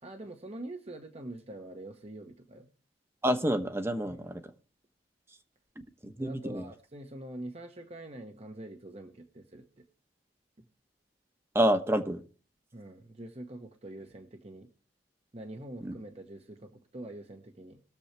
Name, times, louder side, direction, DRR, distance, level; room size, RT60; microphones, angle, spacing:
voice 1, 0.0-2.7 4.0-4.2 6.2-9.8 10.6-10.7 12.7-14.7 15.3-17.8, right 1 dB, 35° right, 5 dB, 1.1 m, -45 dB
voice 2, 3.2-4.4 6.0-6.6 11.5-12.2 15.8-15.9, equal, 15° right, 8 dB, 1.0 m, -28 dB
21.0 x 7.1 x 3.3 m, 0.40 s
head